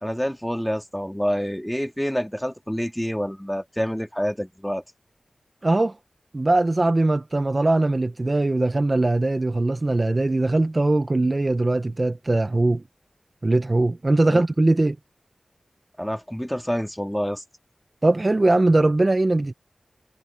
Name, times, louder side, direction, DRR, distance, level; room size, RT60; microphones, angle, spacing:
voice 1, 0.0-4.8 14.2-14.4 16.0-17.4, equal, 5° left, 2.9 m, -27 dB
voice 2, 5.6-6.0 6.3-12.8 13.4-15.0 18.0-19.5, right 2 dB, 35° right, 1.2 m, -21 dB
wide cardioid pair, 60°, 0 cm